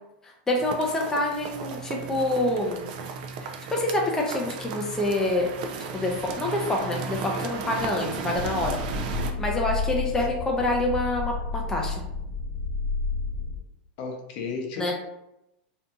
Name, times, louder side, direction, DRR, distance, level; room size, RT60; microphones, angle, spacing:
voice 1, 0.2-2.9 3.4-5.5 5.9-8.8 9.1-12.0 14.8-14.9, left 2 dB, 10° left, 0 dB, 0.4 m, -27 dB
sound 1, 0.6-9.3, right 5 dB, 65° right, 0.4 m, -35 dB
sound 2, 8.3-13.6, left 3 dB, 45° right, 0.9 m, -31 dB
voice 2, 14.0-14.9, left 4 dB, 55° left, 2 dB, 0.6 m, -34 dB
2.6 x 2.6 x 2.2 m, 0.87 s
supercardioid pair, 135°, 5 cm